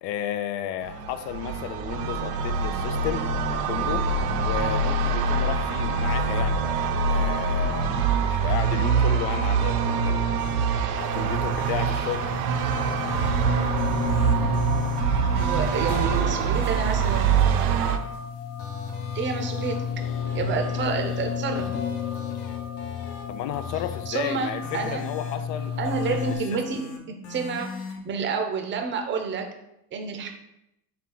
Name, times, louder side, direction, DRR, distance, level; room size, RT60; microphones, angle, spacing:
voice 1, 0.0-3.3 3.7-4.1 4.4-6.6 7.1-10.5 11.0-12.3 23.3-26.6, left 10 dB, 75° left, 11 dB, 0.6 m, -33 dB
sound 1, 0.8-18.0, right 5 dB, 65° right, 0.6 m, -24 dB
sound 2, 10.4-10.5 11.5-12.2 12.7-13.3 13.8-15.0 15.4-16.0 16.5-17.9 18.6-21.3 21.6-23.2 23.5-24.1 24.6-25.4 25.8-27.0 27.2-28.0, left 3 dB, 55° left, 1.0 m, -40 dB
sound 3, 10.9-26.4, left 7 dB, 30° left, 0.6 m, -32 dB
voice 2, 15.4-17.3 19.1-19.8 20.3-21.7 24.1-25.0 25.8-29.5 29.9-30.3, right 5 dB, 25° right, 4 dB, 0.5 m, -29 dB
4.6 x 2.3 x 3.7 m, 0.83 s
supercardioid pair, 105°, 50 cm